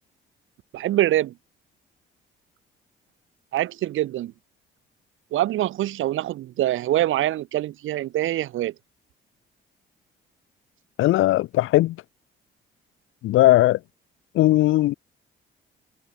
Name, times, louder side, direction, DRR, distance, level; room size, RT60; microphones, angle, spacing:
voice 1, 0.7-1.3 3.5-4.3 5.3-8.7, right 14 dB, 85° right, 5.9 m, -24 dB
voice 2, 11.0-12.0 13.2-13.8 14.3-14.9, left 16 dB, 90° left, 2.6 m, -18 dB
cardioid pair, 90°, 20 cm